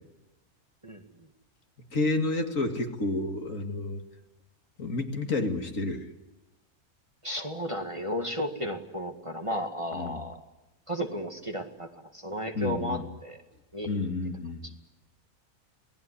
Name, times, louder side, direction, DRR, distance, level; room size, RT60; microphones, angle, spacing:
voice 1, 0.8-1.3 7.2-10.4 10.9-13.4 13.7-14.1, equal, 20° right, 4 dB, 1.9 m, -34 dB
voice 2, 1.9-4.0 4.8-6.1 9.9-10.2 12.5-13.0 13.9-14.7, left 2 dB, 60° left, 5 dB, 2.6 m, -30 dB
28.0 x 19.0 x 10.0 m, 1.1 s
omnidirectional pair, 1.6 m